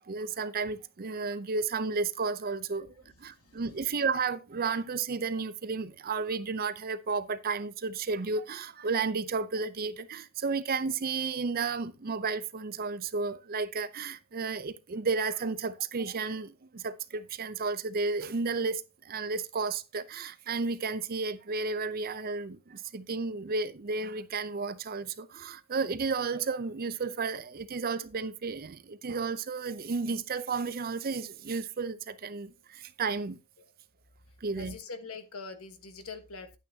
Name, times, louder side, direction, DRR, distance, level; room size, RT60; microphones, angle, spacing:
voice 1, 0.1-2.9 3.2-33.4 34.4-34.8, right 4 dB, 45° right, 0.6 m, -32 dB
voice 2, 34.6-36.6, left 4 dB, 75° left, 1.3 m, -43 dB
10.5 x 9.0 x 2.8 m
head